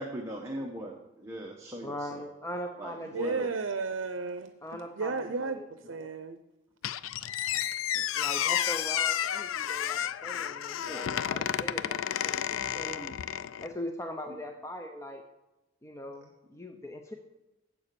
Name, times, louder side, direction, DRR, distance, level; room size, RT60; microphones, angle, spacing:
voice 1, 0.0-2.3 2.8-3.5 5.8-6.0 7.2-8.1 10.8-11.2 14.3-14.4, equal, 15° right, 0 dB, 1.0 m, -41 dB
voice 2, 1.8-3.5 4.6-6.1 8.1-13.1 13.6-15.2 15.8-17.1, equal, 15° left, 4 dB, 0.6 m, -41 dB
voice 3, 3.1-4.5 5.0-6.4, right 4 dB, 80° right, 9 dB, 0.6 m, -33 dB
Squeak, 6.8-13.7, left 10 dB, 85° left, 0.4 m, -31 dB
8.4 x 7.0 x 6.8 m, 0.99 s
head